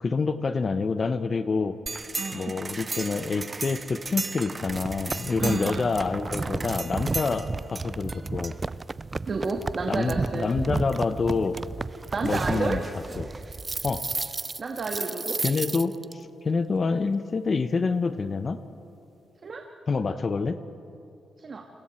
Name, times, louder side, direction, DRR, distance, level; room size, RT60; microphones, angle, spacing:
voice 1, 0.0-1.8 2.3-8.5 9.9-11.6 12.2-12.8 13.2-13.3 13.8-14.0 15.4-18.6 19.9-20.6, left 4 dB, 40° left, 11 dB, 0.8 m, -27 dB
sound 1, 1.9-16.1, right 3 dB, 30° right, 0.4 m, -33 dB
voice 2, 2.2-2.5 5.4-5.9 9.3-10.6 12.1-12.8 14.6-15.4 19.4-19.6 21.4-21.6, right 4 dB, 45° right, 2 dB, 1.7 m, -30 dB
29.5 x 22.0 x 4.4 m, 2.6 s
cardioid pair, 85°, 0 cm